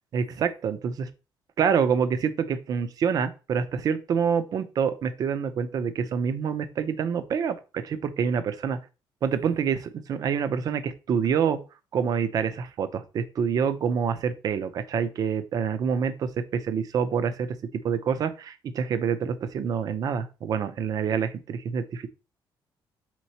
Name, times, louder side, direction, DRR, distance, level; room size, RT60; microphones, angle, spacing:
voice 1, 0.1-1.1 1.6-8.8 9.2-11.6 11.9-22.1, right 7 dB, 45° right, 11 dB, 0.5 m, -27 dB
4.4 x 3.8 x 2.8 m, 0.30 s
cardioid pair, 175°, 9 cm